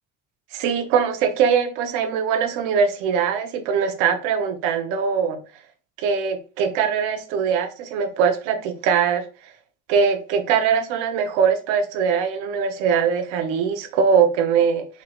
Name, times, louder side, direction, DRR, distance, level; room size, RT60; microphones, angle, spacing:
voice 1, 0.5-5.4 6.0-9.3 9.9-14.9, right 6 dB, 80° right, 0.8 m, -21 dB
4.6 x 3.0 x 2.3 m
supercardioid pair, 80°, 44 cm